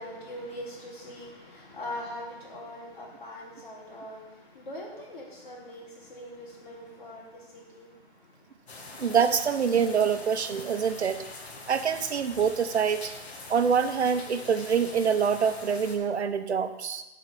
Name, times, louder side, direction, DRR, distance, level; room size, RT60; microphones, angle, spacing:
voice 1, 0.0-4.2 4.5-7.2 7.5-7.9, left 1 dB, 50° left, -5 dB, 4.0 m, -41 dB
sound 1, 8.7-16.0, left 3 dB, 75° left, 2.0 m, -43 dB
voice 2, 9.0-11.2 11.7-13.1 13.5-17.0, right 6 dB, 90° right, 9 dB, 0.9 m, -25 dB
11.0 x 4.8 x 6.9 m, 1.0 s
hypercardioid pair, 170°, 32 cm